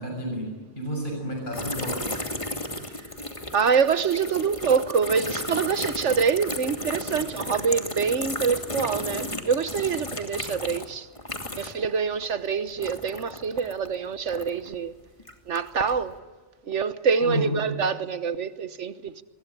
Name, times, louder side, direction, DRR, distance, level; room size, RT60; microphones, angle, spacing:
voice 1, 0.0-2.2 17.2-17.6, equal, 45° left, 7.1 m, -31 dB
sound 1, 1.5-11.9 12.2-14.7 15.2-16.0, left 1 dB, 25° left, 2.5 m, -34 dB
voice 2, 3.5-11.1 11.5-15.0 15.5-16.2 16.6-19.2, right 6 dB, 90° right, 1.5 m, -25 dB
25.0 x 22.0 x 10.0 m
omnidirectional pair, 1.2 m